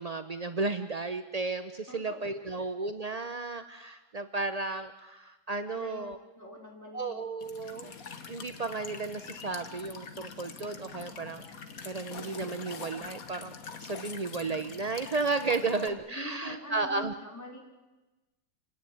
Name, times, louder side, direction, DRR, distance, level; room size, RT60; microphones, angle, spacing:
voice 1, 0.0-6.2 6.9-7.9 8.3-11.4 11.8-13.5 13.8-17.1, right 3 dB, 50° right, 9 dB, 0.4 m, -33 dB
voice 2, 1.9-2.7 5.7-6.0 6.3-7.2 15.6-17.6, equal, 10° left, -1 dB, 4.9 m, -44 dB
Walk footsteps / Chirp tweet / Stream, 7.4-15.9, left 5 dB, 50° left, 1.8 m, -44 dB
28.0 x 17.5 x 9.4 m, 1.1 s
omnidirectional pair, 2.0 m